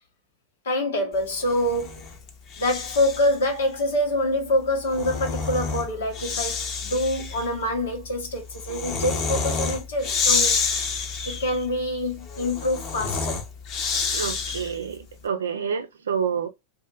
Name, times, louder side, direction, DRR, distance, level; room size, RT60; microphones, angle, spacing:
voice 1, 0.6-2.1 2.6-10.5 11.3-13.4 15.5-15.7, left 1 dB, 80° left, 1.1 m, -26 dB
Breathing, 1.4-3.4 4.6-14.9, left 5 dB, 45° left, 0.8 m, -29 dB
voice 2, 14.1-16.5, right 7 dB, 85° right, 0.5 m, -28 dB
2.6 x 2.5 x 2.3 m
hypercardioid pair, 95°, 0 cm